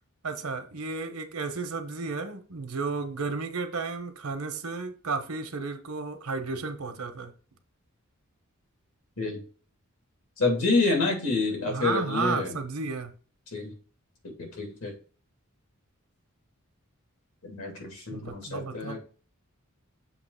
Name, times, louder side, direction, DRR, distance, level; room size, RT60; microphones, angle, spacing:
voice 1, 0.2-7.3 11.7-13.1 18.1-19.0, right 4 dB, 90° right, 7 dB, 1.0 m, -33 dB
voice 2, 10.4-12.5 13.5-13.7 14.4-14.9 17.4-19.0, left 3 dB, 80° left, 1 dB, 2.8 m, -28 dB
7.0 x 2.9 x 5.7 m, 0.39 s
head